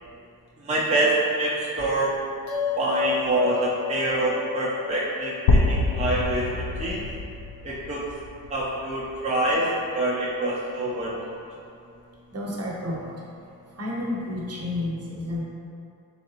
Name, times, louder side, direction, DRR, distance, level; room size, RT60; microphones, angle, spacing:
voice 1, 0.6-2.1 2.8-6.5 6.8-7.0 7.6-8.0 8.5-11.1, right 1 dB, 20° right, -7 dB, 0.6 m, -25 dB
sound 1, 2.5-7.2, left 7 dB, 50° left, 0.8 m, -33 dB
sound 2, 5.5-9.4, left 2 dB, 80° left, 0.5 m, -26 dB
voice 2, 12.3-13.1 13.8-15.4, left 1 dB, 40° right, -4 dB, 0.9 m, -30 dB
3.8 x 3.2 x 2.9 m, 2.6 s
cardioid pair, 70°, 38 cm